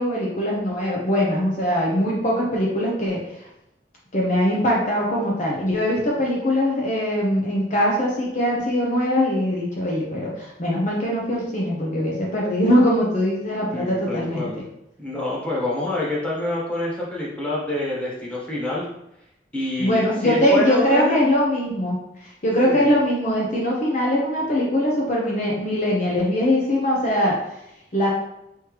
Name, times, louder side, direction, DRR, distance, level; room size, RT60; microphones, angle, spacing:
voice 1, 0.0-3.2 4.1-14.5 19.8-22.0 22.4-27.3 27.9-28.1, equal, 45° left, -3 dB, 0.9 m, -21 dB
voice 2, 13.7-14.6 15.0-18.8 19.5-21.2 22.6-22.9, left 2 dB, 5° left, -6 dB, 1.4 m, -27 dB
5.4 x 3.1 x 3.1 m, 0.82 s
head